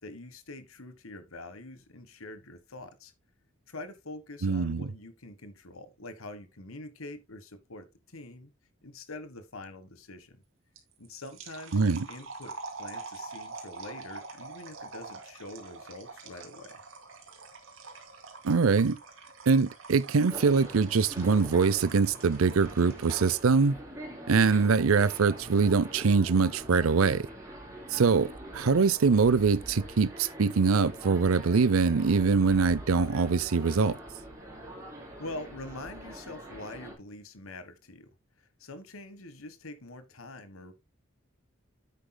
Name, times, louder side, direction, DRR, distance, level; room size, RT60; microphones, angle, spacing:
voice 1, 0.0-3.1 3.7-8.5 8.8-10.4 11.0-16.8 35.2-38.1 38.4-40.7, left 2 dB, 85° left, 1.4 m, -45 dB
voice 2, 4.4-4.9 11.7-12.1 18.4-19.0 19.5-23.8 24.3-27.3 27.9-34.0, right 4 dB, 85° right, 0.6 m, -23 dB
sound 1, 10.8-23.4, right 4 dB, 70° right, 2.4 m, -45 dB
sound 2, 20.3-36.9, right 1 dB, 15° right, 3.8 m, -44 dB
10.0 x 8.5 x 2.2 m
head